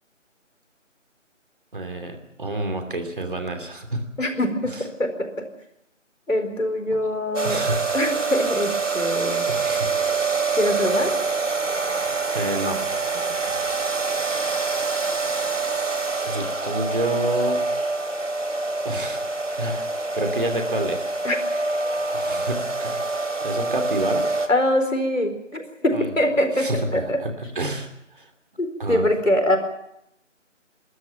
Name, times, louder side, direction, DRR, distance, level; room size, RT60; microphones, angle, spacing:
voice 1, 1.7-4.0 7.4-7.8 9.5-10.3 12.3-12.8 16.2-17.6 18.8-19.3 19.5-19.8 20.1-21.0 22.1-23.0 23.4-24.3 25.9-26.1 26.6-28.3 28.8-29.0, right 1 dB, 40° right, 5 dB, 2.8 m, -29 dB
voice 2, 4.2-5.5 6.3-7.6 7.9-9.5 10.6-11.2 13.3-13.4 21.2-21.4 24.5-27.2 28.6-29.6, left 1 dB, 80° left, 6 dB, 4.5 m, -23 dB
sound 1, 7.3-24.5, right 3 dB, 70° right, 2.7 m, -25 dB
29.5 x 13.0 x 7.1 m, 0.80 s
figure-of-eight pair, 165°, 38 cm